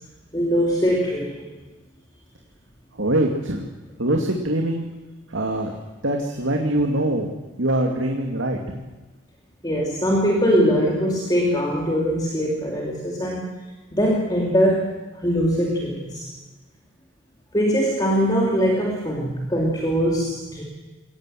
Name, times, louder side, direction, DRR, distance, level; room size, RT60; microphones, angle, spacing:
voice 1, 0.3-1.5 9.6-13.5 13.9-16.3 17.5-20.6, equal, 20° left, -1 dB, 2.8 m, -22 dB
voice 2, 3.0-3.7 4.0-4.8 5.3-5.7 6.0-7.3 7.6-8.8, right 1 dB, 80° right, 2 dB, 2.4 m, -23 dB
22.5 x 18.5 x 7.8 m, 1.2 s
head